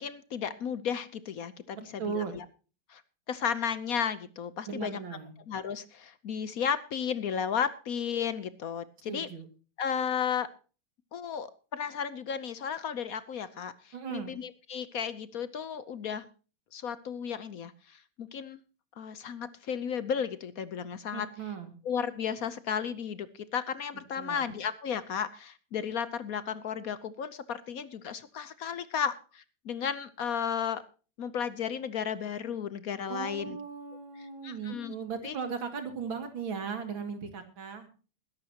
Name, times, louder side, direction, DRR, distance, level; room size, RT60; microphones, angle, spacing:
voice 1, 0.0-2.4 2.9-3.0 3.3-5.0 5.5-9.3 9.8-10.5 11.1-16.3 16.7-18.6 19.0-21.3 21.8-30.8 31.2-33.6 34.4-34.9 35.2-35.3, left 7 dB, 60° left, 15 dB, 0.9 m, -34 dB
voice 2, 2.0-2.3 4.7-5.4 9.1-9.5 13.9-14.3 21.1-21.7 24.2-24.5 33.1-37.9, right 6 dB, 65° right, 7 dB, 3.0 m, -37 dB
21.0 x 11.5 x 2.9 m, 0.35 s
omnidirectional pair, 2.3 m